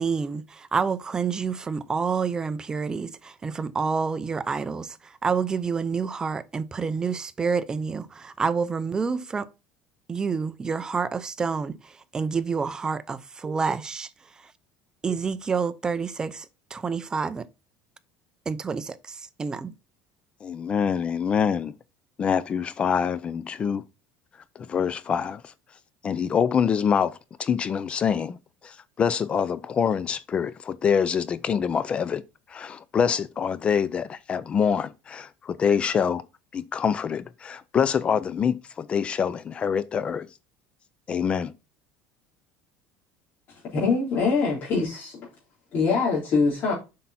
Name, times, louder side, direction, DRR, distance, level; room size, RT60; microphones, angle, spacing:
voice 1, 0.0-5.0 5.2-9.5 10.1-11.8 12.1-14.1 15.0-16.4 16.7-17.5 18.5-19.7, right 5 dB, 15° right, 0.6 m, -28 dB
voice 2, 20.4-21.7 22.2-23.8 24.7-25.4 26.0-28.4 28.6-32.2 32.5-36.2 36.5-40.3 41.1-41.5, left 7 dB, 25° left, 0.5 m, -25 dB
voice 3, 43.5-45.3 45.7-46.7, left 4 dB, 40° left, 3.6 m, -24 dB
7.6 x 5.8 x 4.2 m
cardioid pair, 150°, 4 cm